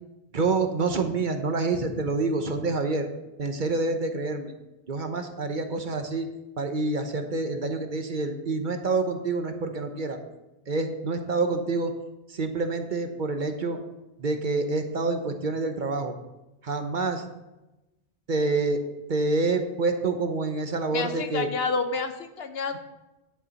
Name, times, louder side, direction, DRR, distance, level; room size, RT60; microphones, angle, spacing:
voice 1, 0.3-3.1 3.4-4.5 4.9-6.3 6.6-10.2 10.7-11.9 12.3-13.8 14.2-16.1 16.6-17.3 18.3-18.8 19.1-21.5, right 3 dB, 50° right, 6 dB, 1.0 m, -27 dB
voice 2, 20.9-22.8, left 4 dB, 65° left, 8 dB, 1.0 m, -29 dB
9.9 x 8.7 x 4.0 m, 1.0 s
omnidirectional pair, 1.1 m